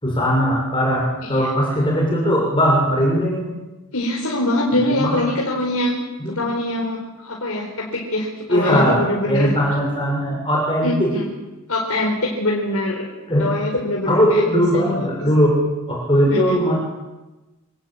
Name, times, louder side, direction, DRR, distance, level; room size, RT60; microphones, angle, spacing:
voice 1, 0.0-3.5 5.0-5.2 6.2-6.4 8.5-9.0 9.2-11.1 13.3-13.5 14.1-15.6 15.9-16.7, equal, 25° left, -2 dB, 6.6 m, -19 dB
voice 2, 3.9-6.0 6.3-7.0 7.2-9.5 10.8-11.4 11.7-13.1 13.4-15.1 16.3-16.6, left 1 dB, 70° left, -1 dB, 4.7 m, -23 dB
27.0 x 19.0 x 8.8 m, 1.1 s
head